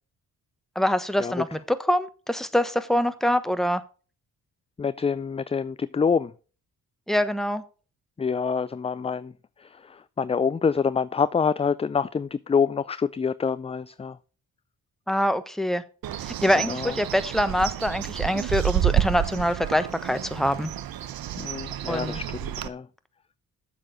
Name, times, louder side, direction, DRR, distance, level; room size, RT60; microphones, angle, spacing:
voice 1, 0.7-3.8 7.1-7.6 15.1-15.8 16.2-20.7 21.9-22.2, equal, ahead, 1.2 m, -24 dB
voice 2, 4.8-6.3 8.2-9.3 9.6-14.2 16.7-16.9 21.4-22.9, left 6 dB, 15° left, 0.3 m, -26 dB
Bird, 16.0-22.7, right 12 dB, 65° right, 0.8 m, -30 dB
7.4 x 6.8 x 6.4 m
supercardioid pair, 50°, 38 cm